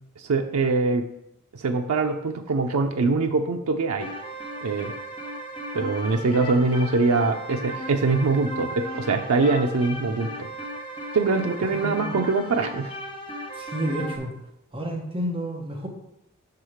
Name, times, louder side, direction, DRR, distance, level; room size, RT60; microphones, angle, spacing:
voice 1, 0.2-1.0 1.5-4.1 4.6-4.9 5.7-10.5 11.1-12.9, right 3 dB, 90° right, 4 dB, 0.5 m, -23 dB
sound 1, 4.0-14.2, equal, 25° left, 0.9 m, -36 dB
voice 2, 11.7-12.1 13.5-14.3 14.7-15.9, right 1 dB, 25° right, 1 dB, 0.8 m, -30 dB
6.3 x 4.7 x 4.9 m, 0.83 s
head